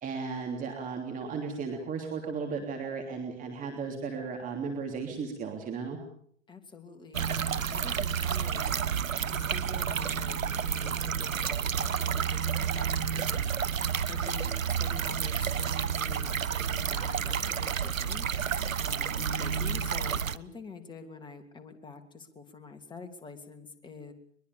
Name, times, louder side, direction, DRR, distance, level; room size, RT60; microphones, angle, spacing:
voice 1, 0.0-6.0, right 5 dB, 20° right, 3 dB, 3.2 m, -35 dB
voice 2, 6.5-8.7 9.3-13.5 14.1-18.3 18.8-24.1, left 4 dB, 10° left, 6 dB, 2.9 m, -46 dB
sound 1, 7.1-20.4, right 7 dB, 85° right, 1.2 m, -30 dB
22.5 x 22.5 x 7.1 m, 0.64 s
hypercardioid pair, 120°, 39 cm